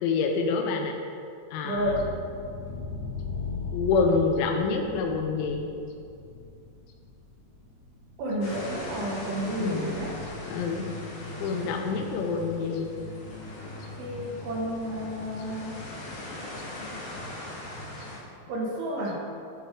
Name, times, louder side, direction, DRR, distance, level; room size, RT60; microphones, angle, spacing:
voice 1, 0.0-1.0 1.5-2.0 3.7-5.7 9.6-9.9 10.5-10.9 11.4-12.9 18.0-18.1, left 4 dB, 90° left, 2 dB, 3.1 m, -27 dB
voice 2, 1.6-2.1 8.2-10.1 14.0-15.8 18.5-19.2, right 1 dB, 70° right, -3 dB, 2.4 m, -31 dB
sound 1, 1.7-10.3, left 4 dB, 55° right, 1.6 m, -39 dB
sound 2, 8.4-18.2, left 1 dB, 60° left, 3.3 m, -39 dB
12.0 x 4.9 x 5.0 m, 2.4 s
omnidirectional pair, 5.4 m